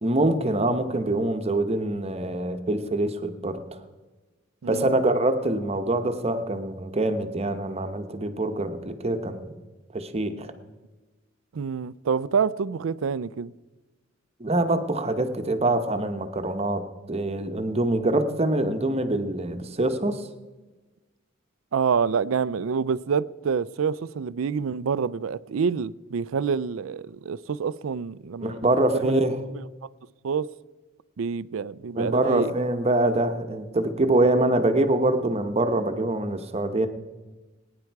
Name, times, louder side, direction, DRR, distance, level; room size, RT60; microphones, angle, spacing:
voice 1, 0.0-3.8 4.7-9.5 9.9-10.5 14.4-20.2 28.4-29.4 31.9-36.9, right 2 dB, 30° right, 1.0 m, -24 dB
voice 2, 4.6-4.9 11.5-13.5 21.7-28.6 28.9-29.2 29.5-29.6 30.2-30.5 31.2-32.5, right 6 dB, 85° right, 0.4 m, -27 dB
19.5 x 9.9 x 4.7 m
head